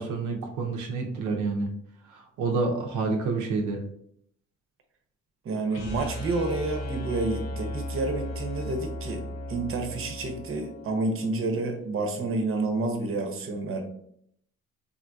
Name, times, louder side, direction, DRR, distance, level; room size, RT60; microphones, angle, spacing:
voice 1, 0.0-1.7 2.1-3.8, right 3 dB, 85° right, 1 dB, 0.6 m, -28 dB
voice 2, 5.4-13.8, right 3 dB, 45° right, 4 dB, 0.7 m, -29 dB
sound 1, 5.7-11.8, left 1 dB, 65° left, 0.9 m, -36 dB
3.6 x 2.5 x 2.3 m, 0.69 s
cardioid pair, 90°, 30 cm